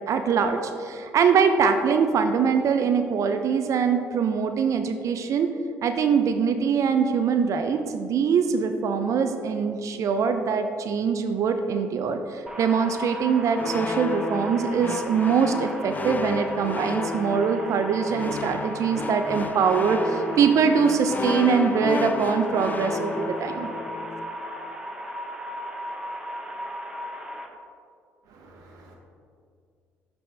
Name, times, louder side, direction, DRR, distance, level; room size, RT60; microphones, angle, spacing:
voice 1, 0.1-5.5 5.8-23.7, right 6 dB, 55° right, 7 dB, 0.5 m, -23 dB
sound 1, 12.5-27.5, equal, 10° right, 1.0 m, -36 dB
sound 2, 13.6-24.5, left 4 dB, 30° left, 0.3 m, -32 dB
voice 2, 28.3-29.0, right 2 dB, 75° right, 0 dB, 1.1 m, -51 dB
9.7 x 4.2 x 3.3 m, 2.2 s
hypercardioid pair, 60°, 6 cm